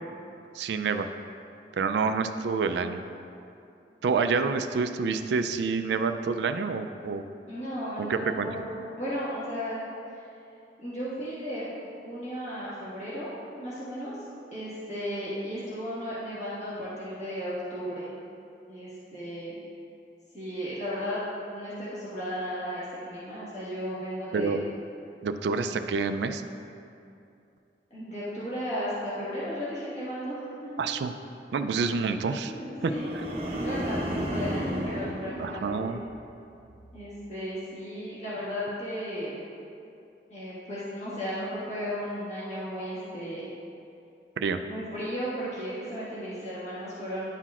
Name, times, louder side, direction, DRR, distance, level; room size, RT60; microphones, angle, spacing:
voice 1, 0.5-1.1 1.7-3.0 4.0-7.2 8.0-8.5 24.3-24.6 25.2-26.4 30.8-31.1 31.5-32.5 32.8-32.9 35.4-36.0 44.4-44.6, right 4 dB, 70° right, 8 dB, 0.3 m, -28 dB
voice 2, 7.5-9.8 10.1-10.2 10.8-11.7 12.0-13.3 13.6-14.2 14.5-18.1 18.7-19.5 20.3-21.2 21.5-24.6 27.9-30.8 32.5-33.1 33.6-36.0 36.9-39.4 40.3-43.5 44.6-47.3, equal, 40° left, -11 dB, 1.6 m, -35 dB
sound 1, 32.8-36.2 36.6-37.0, equal, 35° right, 0.7 m, -33 dB
10.5 x 5.8 x 2.4 m, 2.6 s
head